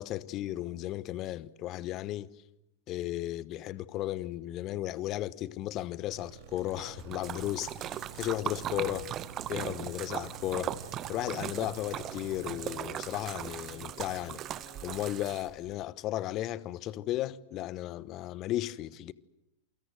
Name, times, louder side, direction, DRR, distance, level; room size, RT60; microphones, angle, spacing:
voice 1, 0.0-2.3 2.9-9.1 9.5-10.7 11.1-14.4 14.8-19.1, left 14 dB, 35° left, 1.1 m, -35 dB
sound 1, 6.1-15.2, right 7 dB, 50° right, 4.1 m, -48 dB
Splash splatter, 6.6-15.7, right 11 dB, 30° right, 1.2 m, -39 dB
28.5 x 24.0 x 7.8 m
figure-of-eight pair, 90°, 0 cm